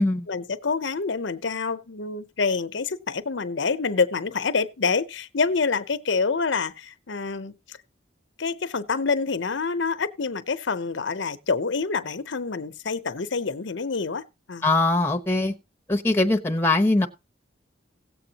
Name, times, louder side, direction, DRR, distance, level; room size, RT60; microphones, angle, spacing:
voice 1, 0.3-7.8 8.4-14.6, left 4 dB, 70° left, 0.7 m, -27 dB
voice 2, 14.6-15.5 15.9-17.1, left 2 dB, 10° left, 0.9 m, -21 dB
17.5 x 7.7 x 2.9 m
head